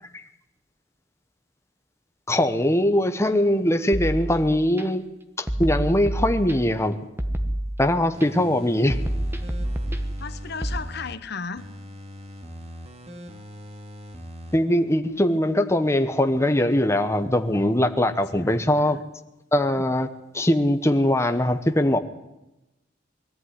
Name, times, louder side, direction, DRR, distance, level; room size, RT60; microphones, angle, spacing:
voice 1, 2.3-5.0 5.4-7.0 7.8-9.0 14.5-19.0 19.5-20.1 20.3-22.0, left 1 dB, 15° left, 7 dB, 1.1 m, -21 dB
sound 1, 3.9-4.8 5.5-6.8 7.2-8.3 8.9-10.8, right 1 dB, 10° right, 1.4 m, -28 dB
sound 2, 8.1-11.1 11.6-14.6 15.0-15.1, equal, 35° right, 2.1 m, -41 dB
voice 2, 10.2-11.6 18.3-19.0, left 5 dB, 60° left, 12 dB, 1.0 m, -35 dB
21.0 x 14.5 x 9.7 m, 0.96 s
head